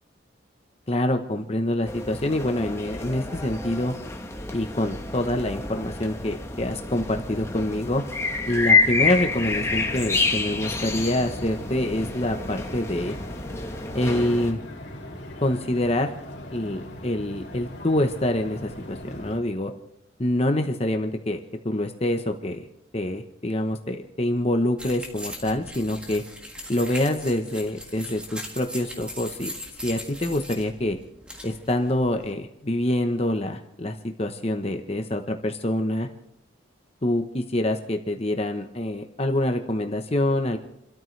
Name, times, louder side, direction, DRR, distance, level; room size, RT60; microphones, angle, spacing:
voice 1, 0.9-3.9 4.5-8.0 8.5-13.2 13.9-14.6 15.4-16.1 16.5-19.7 20.2-21.4 21.6-22.6 22.9-26.2 26.7-29.5 29.8-31.0 31.4-36.1 37.0-40.6, left 1 dB, 30° left, 5 dB, 1.0 m, -26 dB
sound 1, 1.9-14.5, left 3 dB, 15° left, 1.1 m, -28 dB
sound 2, 9.0-19.4, left 1 dB, 55° left, 2.9 m, -40 dB
sound 3, 24.8-32.3, equal, 5° right, 1.6 m, -40 dB
29.0 x 13.0 x 3.3 m, 0.81 s
head